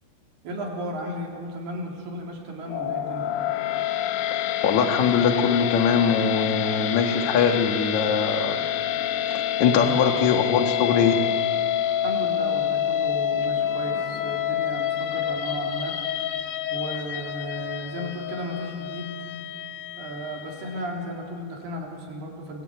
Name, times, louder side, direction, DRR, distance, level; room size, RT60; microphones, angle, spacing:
voice 1, 0.4-3.3 9.7-10.0 12.0-16.0 16.7-19.2 20.0-22.6, right 1 dB, 70° right, 0 dB, 5.4 m, -34 dB
sound 1, 2.6-20.9, left 10 dB, 80° left, 1.8 m, -28 dB
voice 2, 4.3-8.6 9.6-11.2, left 6 dB, 55° left, 5 dB, 2.5 m, -22 dB
27.5 x 21.5 x 9.3 m, 2.4 s
omnidirectional pair, 4.8 m